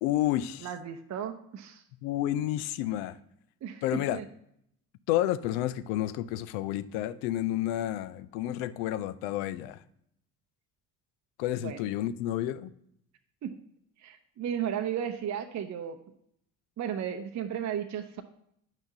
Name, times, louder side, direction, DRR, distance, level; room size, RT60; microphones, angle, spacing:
voice 1, 0.0-0.7 2.0-3.2 3.8-4.2 5.1-9.8 11.4-12.7, left 13 dB, 70° left, 0.5 m, -30 dB
voice 2, 0.6-1.8 3.6-4.3 11.6-11.8 13.4-13.5 14.0-16.0 16.8-18.2, right 9 dB, 35° right, 0.6 m, -34 dB
8.9 x 5.7 x 2.7 m
hypercardioid pair, 50°, 48 cm